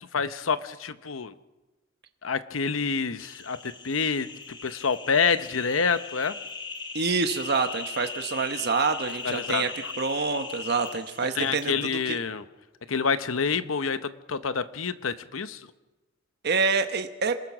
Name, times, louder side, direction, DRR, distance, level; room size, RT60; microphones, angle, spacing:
voice 1, 0.1-1.3 2.2-6.4 9.2-9.9 11.3-12.4 12.9-15.7, left 5 dB, 85° left, 13 dB, 0.9 m, -27 dB
sound 1, 3.2-11.7, left 4 dB, 25° left, 1.5 m, -39 dB
voice 2, 6.9-9.7 10.0-11.8 12.1-12.2 16.4-17.3, right 4 dB, 55° right, 7 dB, 1.0 m, -26 dB
27.0 x 20.0 x 6.1 m, 1.1 s
head